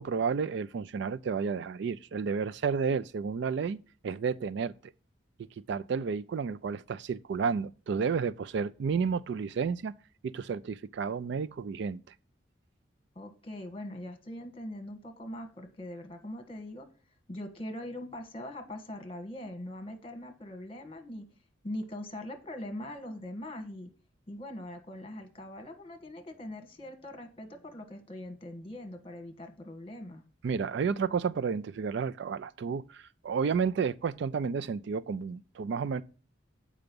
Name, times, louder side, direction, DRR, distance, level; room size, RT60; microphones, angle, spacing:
voice 1, 0.0-4.9 5.7-9.9 10.2-12.0 30.4-36.0, right 5 dB, 60° right, 0.3 m, -31 dB
voice 2, 13.1-16.9 17.3-21.2 21.6-23.9 24.3-30.2, left 1 dB, 30° left, 1.3 m, -42 dB
7.8 x 5.0 x 5.2 m
head